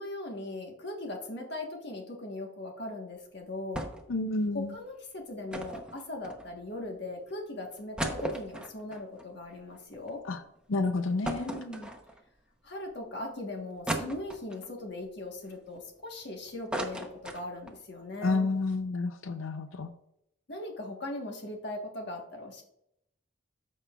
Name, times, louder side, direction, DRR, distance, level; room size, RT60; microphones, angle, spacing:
voice 1, 0.0-3.9 4.5-10.2 11.3-11.9 12.6-18.5 20.5-22.6, left 2 dB, 55° left, 2 dB, 1.3 m, -39 dB
sound 1, 3.7-4.2 4.5-4.6 5.5-6.8 7.3-7.4 7.7-10.2 10.6-10.7 11.2-12.4 12.9-13.0 13.9-14.7 15.3-16.2 16.5-17.8 18.2-18.3 18.5-18.8, right 1 dB, 5° right, 0.8 m, -37 dB
voice 2, 4.1-4.8 10.3-10.4 10.7-11.5 18.2-19.9, left 3 dB, 85° left, 8 dB, 0.6 m, -29 dB
14.0 x 5.5 x 2.4 m, 0.78 s
head